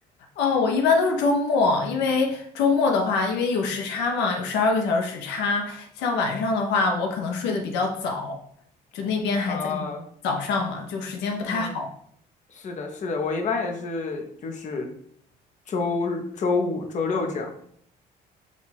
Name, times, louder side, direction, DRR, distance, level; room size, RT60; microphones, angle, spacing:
voice 1, 0.4-8.4 8.9-9.9 10.2-11.9, left 4 dB, 85° left, 3 dB, 0.6 m, -24 dB
voice 2, 9.5-10.0 11.5-11.7 12.6-14.9 15.7-17.5, left 4 dB, 45° left, 3 dB, 0.7 m, -28 dB
4.2 x 2.3 x 4.0 m, 0.65 s
cardioid pair, 110°, 17 cm